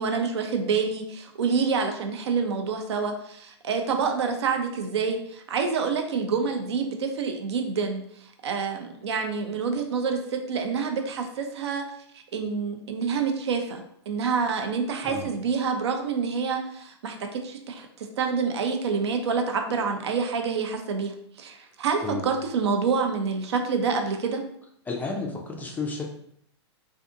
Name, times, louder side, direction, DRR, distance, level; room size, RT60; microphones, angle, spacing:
voice 1, 0.0-11.8 12.1-24.4, right 5 dB, 70° right, 5 dB, 0.5 m, -27 dB
voice 2, 24.9-26.0, left 3 dB, 10° left, 1 dB, 0.3 m, -32 dB
2.5 x 2.5 x 2.5 m, 0.69 s
hypercardioid pair, 125°, 15 cm